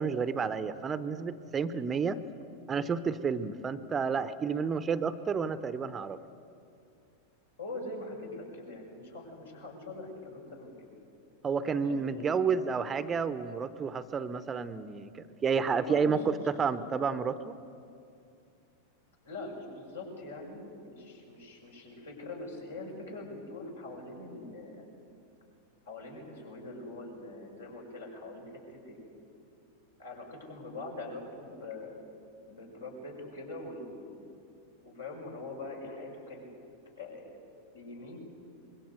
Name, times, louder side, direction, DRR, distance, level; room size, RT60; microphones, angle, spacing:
voice 1, 0.0-2.2 2.7-6.2 11.4-15.1 15.4-17.5, right 5 dB, 20° right, 14 dB, 0.8 m, -30 dB
voice 2, 7.6-10.9 11.8-13.0 15.6-16.4 19.2-24.9 25.8-29.0 30.0-32.0 32.5-34.2 34.8-36.5 37.0-37.4 37.7-38.2, left 2 dB, 70° left, 0 dB, 6.5 m, -43 dB
25.0 x 22.0 x 8.1 m, 2.5 s
figure-of-eight pair, 90°, 0 cm